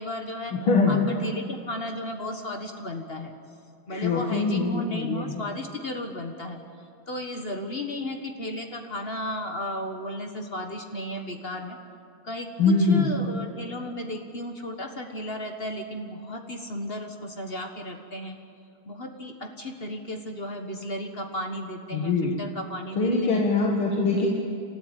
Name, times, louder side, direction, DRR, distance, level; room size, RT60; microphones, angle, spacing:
voice 1, 0.0-0.5 0.9-3.4 3.9-6.6 7.1-11.8 12.2-18.4 18.8-23.4, left 1 dB, 30° left, 4 dB, 1.5 m, -34 dB
voice 2, 0.5-1.0 3.9-5.4 12.6-13.1 21.9-22.4 23.0-24.3, left 3 dB, 85° left, -1 dB, 2.7 m, -23 dB
27.5 x 14.5 x 9.0 m, 2.4 s
omnidirectional pair, 2.3 m